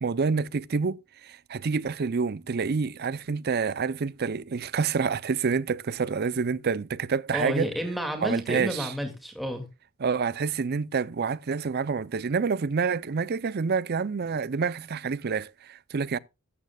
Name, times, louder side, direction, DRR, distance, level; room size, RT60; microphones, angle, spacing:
voice 1, 0.0-7.7 8.2-8.9 10.0-16.2, right 5 dB, 45° right, 0.5 m, -28 dB
voice 2, 7.3-9.6, equal, ahead, 2.1 m, -31 dB
15.0 x 13.0 x 2.3 m
head